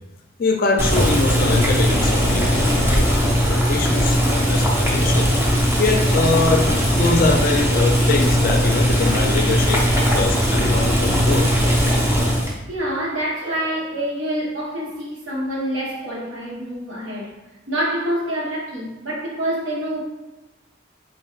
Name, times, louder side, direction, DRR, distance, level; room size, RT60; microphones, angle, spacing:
voice 1, 0.4-5.3 5.8-9.9 10.1-11.5, left 3 dB, 45° left, 3 dB, 0.4 m, -23 dB
Boiling, 0.8-12.6, equal, 10° right, 0.5 m, -19 dB
voice 2, 12.4-17.3 17.7-20.0, right 1 dB, 80° right, -5 dB, 1.1 m, -26 dB
3.8 x 2.4 x 3.1 m, 1.1 s
head